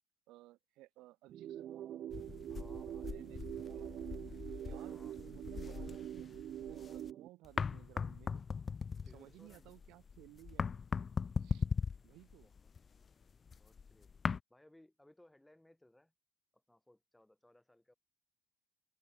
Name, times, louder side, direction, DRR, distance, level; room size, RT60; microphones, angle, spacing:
voice 1, 0.3-2.0 2.9-4.0 4.6-8.4 9.1-10.8 11.4-11.7 12.0-12.5, right 18 dB, 65° right, 5.6 m, -58 dB
sound 1, 1.3-7.3, right 11 dB, 50° right, 0.6 m, -45 dB
sound 2, 2.1-7.1 7.4-14.4, left 6 dB, 25° left, 0.5 m, -40 dB
voice 2, 2.5-3.6 4.9-5.7 9.0-9.7 12.4-12.7 13.5-14.2 14.5-16.1 16.5-17.9, left 1 dB, 5° left, 8.0 m, -65 dB
cardioid pair, 125°, 0 cm